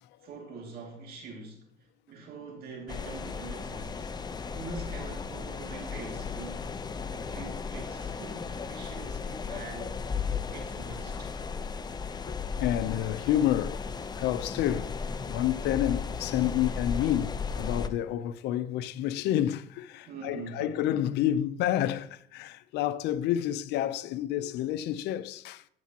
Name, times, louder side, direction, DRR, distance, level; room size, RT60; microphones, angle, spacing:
voice 1, 0.2-1.6 2.1-4.1 4.5-6.7 7.1-10.0 10.5-11.3 20.0-20.8, right 3 dB, 65° right, 2.4 m, -44 dB
sound 1, 2.9-17.9, left 5 dB, 25° left, 0.6 m, -35 dB
voice 2, 12.3-13.9 14.1-14.9 15.3-25.6, left 12 dB, 85° left, 0.6 m, -29 dB
14.0 x 8.5 x 2.9 m
cardioid pair, 110°, 17 cm